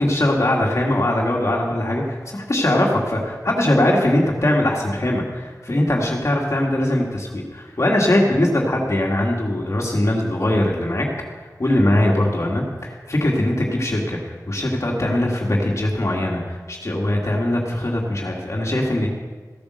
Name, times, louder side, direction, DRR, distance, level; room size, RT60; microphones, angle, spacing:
voice 1, 0.0-11.1 11.4-19.1, left 1 dB, 50° left, -1 dB, 2.1 m, -21 dB
15.5 x 8.7 x 6.4 m, 1.5 s
wide cardioid pair, 60°, 7 cm